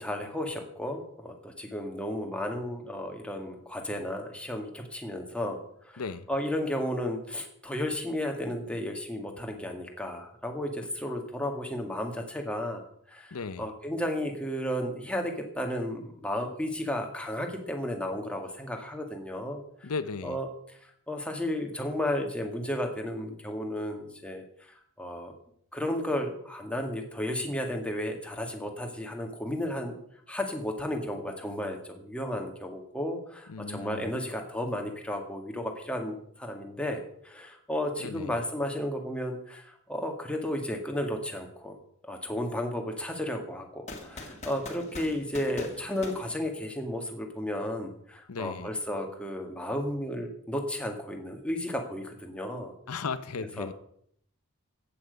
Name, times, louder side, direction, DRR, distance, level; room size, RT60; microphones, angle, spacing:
voice 1, 0.0-19.9 20.2-25.3 25.7-29.9 30.3-41.8 42.0-52.7 53.6-53.7, left 1 dB, 5° left, 1.8 m, -33 dB
voice 2, 6.0-6.3 13.3-13.7 19.8-20.4 33.5-34.2 38.0-38.4 48.3-48.7 52.9-53.7, left 4 dB, 85° left, 0.7 m, -36 dB
sound 1, 43.9-47.1, left 2 dB, 30° left, 2.1 m, -43 dB
14.5 x 8.9 x 5.3 m
head